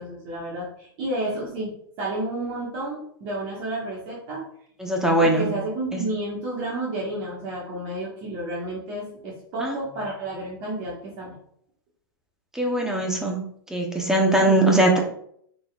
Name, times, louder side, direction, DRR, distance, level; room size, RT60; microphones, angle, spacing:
voice 1, 0.0-4.4 5.2-11.3 14.4-14.8, right 1 dB, 40° right, -5 dB, 1.5 m, -31 dB
voice 2, 4.8-5.6 5.9-6.0 9.6-9.7 12.5-13.4 13.7-15.0, right 1 dB, 5° right, 0 dB, 1.0 m, -21 dB
5.4 x 4.1 x 2.4 m, 0.67 s
hypercardioid pair, 125°, 12 cm